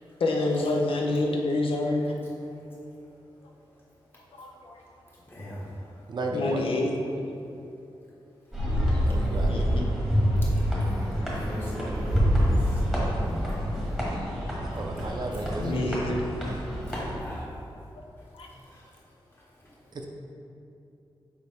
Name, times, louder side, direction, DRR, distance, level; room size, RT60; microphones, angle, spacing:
voice 1, 0.2-2.1 4.4-4.8 6.3-6.9 8.9-9.0 9.5-9.9 15.6-16.2 18.3-18.5, left 2 dB, 75° left, 0 dB, 0.7 m, -27 dB
voice 2, 5.3-5.9 9.1-9.5 10.8-14.0 15.6-15.8 16.4-16.5 16.9-17.5 18.7-18.9 19.6-19.7, equal, 25° left, -7 dB, 1.5 m, -38 dB
voice 3, 6.1-6.8 9.1-9.7 14.6-15.9 19.9-20.1, right 2 dB, 55° right, 1 dB, 0.6 m, -33 dB
sound 1, 8.5-17.2, equal, ahead, 1.3 m, -27 dB
6.6 x 4.8 x 3.5 m, 2.7 s
wide cardioid pair, 150°, 9 cm